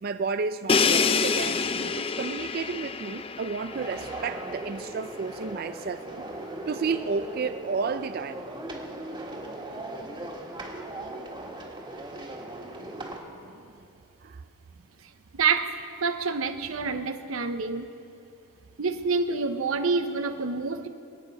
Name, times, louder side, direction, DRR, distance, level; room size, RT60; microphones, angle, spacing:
voice 1, 0.0-6.2 6.7-8.8 13.3-13.6 14.2-14.4, right 5 dB, 45° right, 11 dB, 0.4 m, -32 dB
Crash cymbal, 0.7-4.5, left 5 dB, 25° left, 0.4 m, -27 dB
sound 1, 3.7-13.2, right 1 dB, 25° right, 1.7 m, -38 dB
voice 2, 15.3-17.9 18.8-20.9, right 4 dB, 85° right, 8 dB, 0.8 m, -27 dB
24.0 x 9.1 x 5.5 m, 2.7 s
head